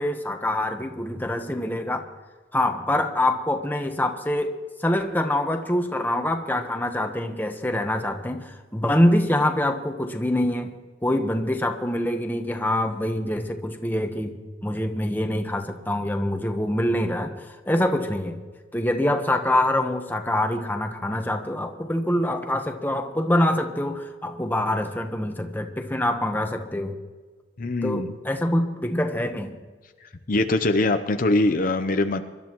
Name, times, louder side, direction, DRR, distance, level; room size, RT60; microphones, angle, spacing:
voice 1, 0.0-2.0 2.5-4.5 4.8-14.3 14.6-18.4 18.7-27.0 27.8-29.5, left 1 dB, 10° left, 5 dB, 1.1 m, -25 dB
voice 2, 27.6-28.1 30.3-32.2, left 2 dB, 50° left, 7 dB, 0.7 m, -22 dB
25.0 x 12.5 x 3.0 m, 1.4 s
head